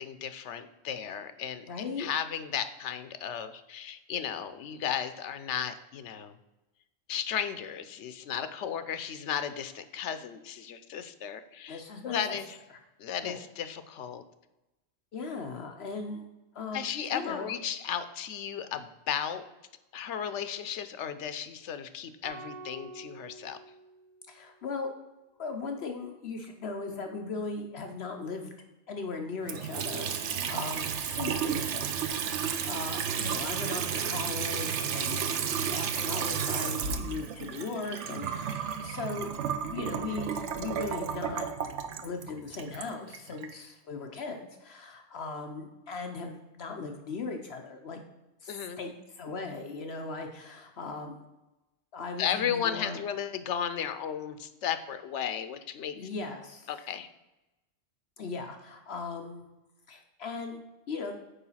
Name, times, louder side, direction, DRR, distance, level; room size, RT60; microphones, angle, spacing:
voice 1, 0.0-1.6 2.0-6.3 7.1-12.6 13.0-14.2 16.7-19.5 19.9-23.6 48.5-48.8 52.2-56.0 56.7-57.1, left 8 dB, 85° left, 11 dB, 1.0 m, -34 dB
voice 2, 1.7-2.1 11.7-12.4 13.2-13.4 15.1-16.3 16.5-16.8 17.1-17.5 24.3-24.9 25.4-28.5 28.9-35.3 35.7-39.3 39.7-41.5 42.0-48.0 48.4-51.3 51.9-53.0 55.9-56.7 58.2-59.5 59.9-60.6 60.9-61.1, left 4 dB, 65° left, 4 dB, 1.0 m, -38 dB
sound 1, 22.2-24.6, right 2 dB, 25° right, 1.4 m, -47 dB
Water tap faucet / Sink (filling or washing) / Trickle dribble, 29.4-43.5, right 7 dB, 90° right, 1.0 m, -32 dB
7.0 x 4.9 x 5.6 m, 1.0 s
omnidirectional pair, 1.2 m